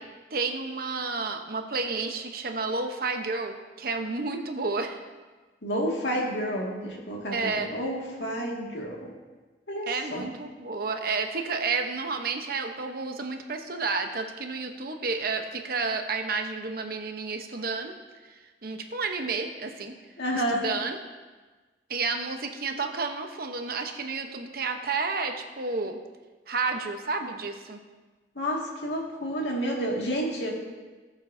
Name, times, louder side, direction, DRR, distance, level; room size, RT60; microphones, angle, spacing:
voice 1, 0.3-5.0 7.3-7.7 9.9-18.0 18.2-18.3 18.6-19.9 20.5-21.0 21.9-26.0 26.5-27.8, right 4 dB, 55° right, 5 dB, 0.9 m, -31 dB
voice 2, 5.6-7.4 7.7-9.0 9.7-10.2 20.2-20.6 28.4-30.5, equal, 85° left, -1 dB, 2.0 m, -30 dB
19.0 x 7.3 x 2.7 m, 1.3 s
head